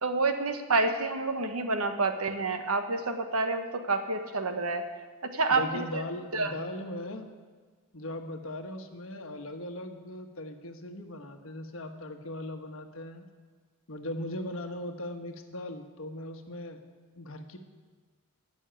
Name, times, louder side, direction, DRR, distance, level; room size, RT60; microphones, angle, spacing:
voice 1, 0.0-4.8 5.3-6.0 6.3-6.5, right 3 dB, 80° right, 7 dB, 1.2 m, -28 dB
voice 2, 5.5-7.3 7.9-13.3 13.9-16.8 17.2-17.6, left 1 dB, 65° left, 5 dB, 1.3 m, -39 dB
15.5 x 6.4 x 8.9 m, 1.4 s
head